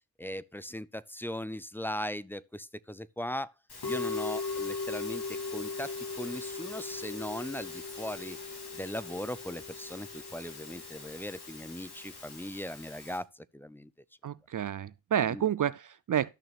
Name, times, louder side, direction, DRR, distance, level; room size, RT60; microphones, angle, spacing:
voice 1, 0.2-3.5 3.8-5.2 5.5-8.4 8.7-13.9 15.3-15.5, left 1 dB, 5° left, 0.5 m, -39 dB
Musical instrument, 3.7-13.2, left 4 dB, 75° left, 3.3 m, -39 dB
voice 2, 14.2-16.3, right 9 dB, 50° right, 0.5 m, -30 dB
14.0 x 6.1 x 2.4 m
cardioid pair, 55°, 40 cm